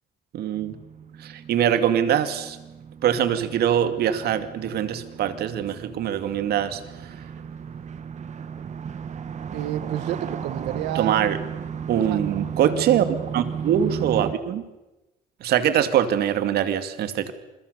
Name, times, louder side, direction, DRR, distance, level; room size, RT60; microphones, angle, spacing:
voice 1, 0.3-0.7 1.2-2.6 3.0-7.1 10.9-11.4 11.9-13.1 13.3-14.6 15.4-17.3, right 9 dB, 70° right, 11 dB, 2.3 m, -23 dB
sound 1, 0.5-14.3, right 7 dB, 45° right, 1.9 m, -35 dB
voice 2, 9.5-11.3 12.0-12.2 12.7-13.1, right 13 dB, 90° right, 14 dB, 1.7 m, -31 dB
28.0 x 22.5 x 6.9 m, 1.0 s
cardioid pair, 110°, 17 cm